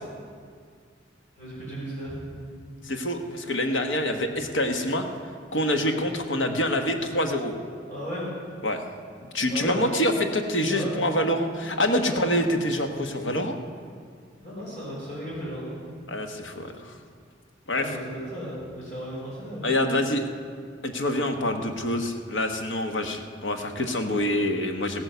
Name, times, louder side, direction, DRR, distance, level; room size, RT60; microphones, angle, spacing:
voice 1, 1.4-2.2 7.9-8.2 9.5-9.8 10.7-10.9 12.0-12.3 14.4-15.8 17.7-19.7, equal, 45° left, -8 dB, 4.7 m, -35 dB
voice 2, 2.8-5.1 5.5-7.5 8.6-8.8 9.3-13.6 16.1-16.9 17.7-17.9 19.6-20.2 20.8-25.0, left 1 dB, 75° left, 5 dB, 1.2 m, -26 dB
16.0 x 9.3 x 6.8 m, 2.1 s
head